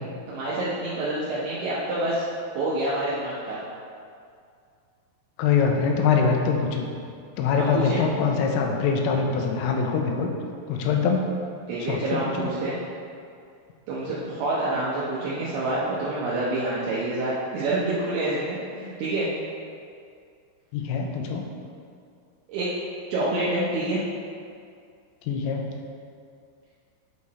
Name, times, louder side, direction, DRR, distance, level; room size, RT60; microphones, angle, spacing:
voice 1, 0.3-2.3 2.6-3.6 7.5-8.1 11.7-12.8 13.9-19.3 22.5-22.7 23.1-24.0, right 2 dB, 80° right, -8 dB, 2.2 m, -27 dB
voice 2, 5.4-6.9 7.4-10.3 10.7-11.2 11.9-12.0 12.4-12.5 20.7-21.4 25.3-25.6, left 5 dB, 85° left, 2 dB, 3.2 m, -23 dB
8.4 x 4.8 x 4.2 m, 2.3 s
omnidirectional pair, 5.8 m